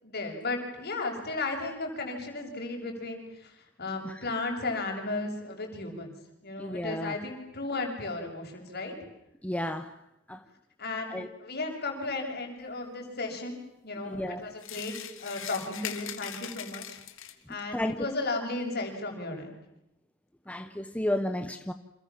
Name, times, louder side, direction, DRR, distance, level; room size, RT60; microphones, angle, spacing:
voice 1, 0.0-3.5 3.8-6.2 6.4-8.9 10.8-13.6 13.8-17.0 17.5-19.5, left 3 dB, 50° left, 3 dB, 6.8 m, -35 dB
voice 2, 6.6-7.1 9.4-9.9 10.3-10.4 11.1-11.3 14.1-14.5 17.7-18.0 20.5-21.7, left 1 dB, 5° left, 8 dB, 1.0 m, -32 dB
sound 1, 14.6-17.5, left 10 dB, 65° left, 2.4 m, -40 dB
29.5 x 27.5 x 7.4 m, 0.87 s
head